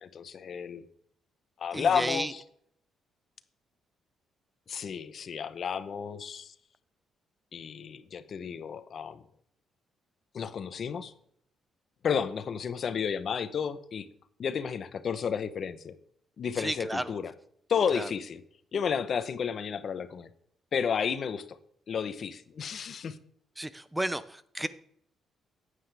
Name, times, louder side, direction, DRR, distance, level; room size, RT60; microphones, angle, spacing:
voice 1, 0.0-0.9 1.6-2.4 4.7-6.5 7.5-9.2 10.3-11.1 12.0-14.1 14.4-15.9 16.4-17.3 17.7-18.4 18.7-20.3 20.7-21.6 21.9-23.2, left 7 dB, 55° left, 13 dB, 0.8 m, -32 dB
voice 2, 1.7-2.3 16.6-17.2 17.9-18.1 23.6-24.7, right 1 dB, 10° right, 15 dB, 0.6 m, -33 dB
9.4 x 9.3 x 3.4 m, 0.67 s
cardioid pair, 90°, 0 cm